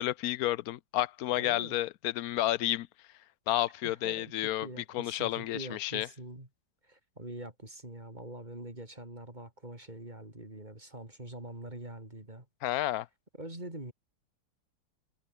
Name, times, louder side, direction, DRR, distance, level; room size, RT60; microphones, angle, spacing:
voice 1, 0.0-2.9 3.5-4.7 4.9-6.1 12.6-13.1, left 14 dB, 70° left, 1.0 m, -31 dB
voice 2, 1.3-1.8 3.8-6.5 6.8-12.5 13.4-13.9, right 1 dB, 25° right, 5.3 m, -44 dB
omnidirectional pair, 1.8 m